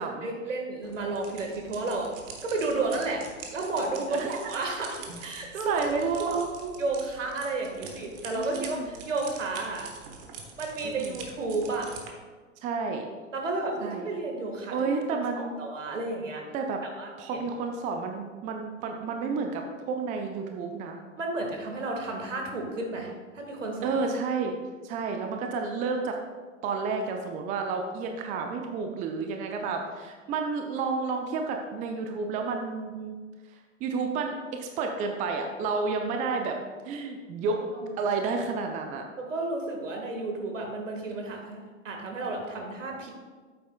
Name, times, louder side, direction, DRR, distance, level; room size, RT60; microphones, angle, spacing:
voice 1, 0.2-2.1 2.4-3.2 3.5-6.4 6.8-9.9 10.6-11.9 13.3-15.0 15.4-16.4 17.0-17.4 21.2-24.0 37.7-37.9 39.2-43.1, right 3 dB, 70° right, 1 dB, 1.7 m, -32 dB
sound 1, 0.8-12.1, right 5 dB, 45° right, 1.3 m, -45 dB
voice 2, 5.7-6.7 8.3-8.9 10.8-11.2 12.6-13.0 13.8-14.1 14.7-15.5 16.5-16.8 17.2-21.0 23.8-24.6 24.8-26.2 26.6-33.2 33.8-36.6 36.8-37.6 38.0-39.0, right 4 dB, 20° right, 4 dB, 0.5 m, -31 dB
8.5 x 8.5 x 2.3 m, 1.4 s
figure-of-eight pair, 95°, 39 cm